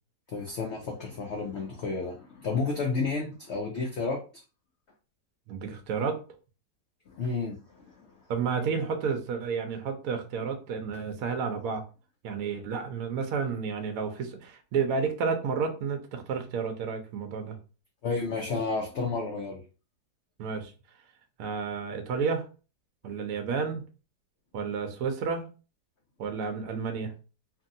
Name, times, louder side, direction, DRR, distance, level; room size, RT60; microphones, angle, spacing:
voice 1, 0.3-4.4 7.1-7.9 18.0-19.6, left 4 dB, 80° left, 1 dB, 0.6 m, -31 dB
voice 2, 5.5-6.2 8.3-11.8 12.2-17.6 20.4-20.7 21.4-22.5 23.0-23.8 24.5-25.4 26.2-27.1, right 5 dB, 65° right, 5 dB, 0.9 m, -31 dB
2.9 x 2.6 x 2.6 m, 0.34 s
omnidirectional pair, 1.9 m